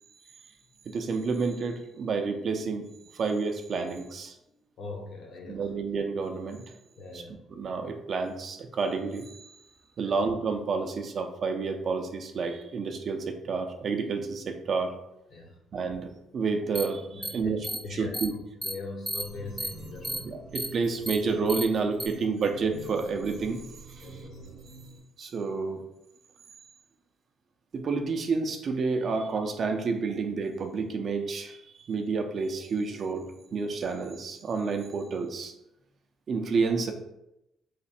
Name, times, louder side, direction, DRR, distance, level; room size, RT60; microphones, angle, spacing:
voice 1, 0.9-4.4 5.5-6.6 7.1-7.2 7.5-9.6 10.0-15.0 15.7-18.3 20.2-23.6 24.0-24.2 25.2-25.8 27.7-33.3 33.5-35.5 36.3-36.9, right 4 dB, 55° right, 5 dB, 0.5 m, -30 dB
voice 2, 4.8-5.7 7.0-7.4 10.0-10.1 15.3-15.6 17.1-17.5 17.8-18.2 18.6-20.2 24.0-24.5, left 3 dB, 65° left, 0 dB, 1.0 m, -41 dB
sound 1, 16.7-16.8 17.2-17.3 17.6-17.8 18.1-18.2 18.6-18.7 19.1-19.2 19.6-19.7 20.0-20.2 20.5-20.7 21.1-21.2 21.5-21.6 22.0-22.1, right 1 dB, 10° right, 0.6 m, -32 dB
sound 2, 19.2-25.0, right 2 dB, 90° right, 0.7 m, -46 dB
3.2 x 2.4 x 4.2 m, 0.87 s
cardioid pair, 90°, 0 cm